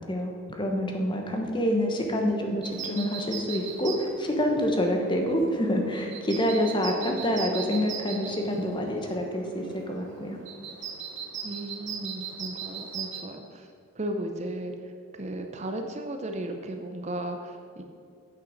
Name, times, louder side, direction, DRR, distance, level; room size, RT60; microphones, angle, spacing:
voice 1, 0.1-10.4, equal, 20° left, 2 dB, 1.1 m, -27 dB
sound 1, 2.6-13.2, right 7 dB, 60° right, 1.0 m, -39 dB
voice 2, 11.4-13.7 14.0-14.7 15.2-17.8, right 1 dB, 30° right, 5 dB, 0.6 m, -35 dB
8.7 x 6.5 x 6.4 m, 2.5 s
head